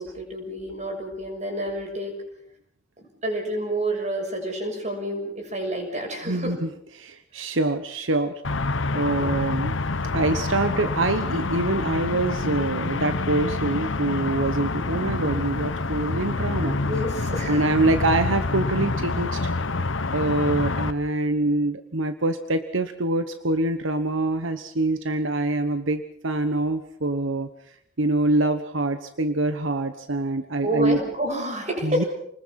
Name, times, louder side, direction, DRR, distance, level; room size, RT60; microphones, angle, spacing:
voice 1, 0.0-2.1 3.0-6.6 9.1-9.3 16.7-17.6 30.6-32.0, right 1 dB, 35° right, 3 dB, 6.7 m, -29 dB
voice 2, 6.2-6.7 7.0-8.3 8.9-9.8 10.1-16.8 17.5-19.5 20.1-31.0 31.8-32.0, right 2 dB, 75° right, 9 dB, 1.2 m, -25 dB
sound 1, 8.4-20.9, left 3 dB, 70° left, 1.0 m, -27 dB
29.0 x 20.5 x 6.0 m, 0.70 s
head